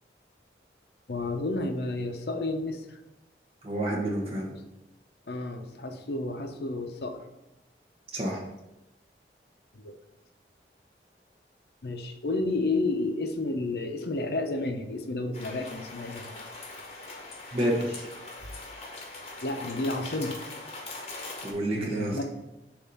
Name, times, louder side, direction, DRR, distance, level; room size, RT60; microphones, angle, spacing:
voice 1, 1.1-3.0 4.5-4.6 5.3-7.2 9.7-9.9 11.8-16.3 19.4-20.4 21.7-22.2, left 2 dB, 65° left, 6 dB, 0.7 m, -31 dB
voice 2, 3.6-4.5 8.1-8.4 17.5-18.1 21.4-22.2, right 1 dB, 35° right, -2 dB, 1.0 m, -29 dB
sound 1, 15.3-21.5, left 3 dB, 35° left, 0.9 m, -42 dB
7.1 x 2.6 x 5.4 m, 0.96 s
head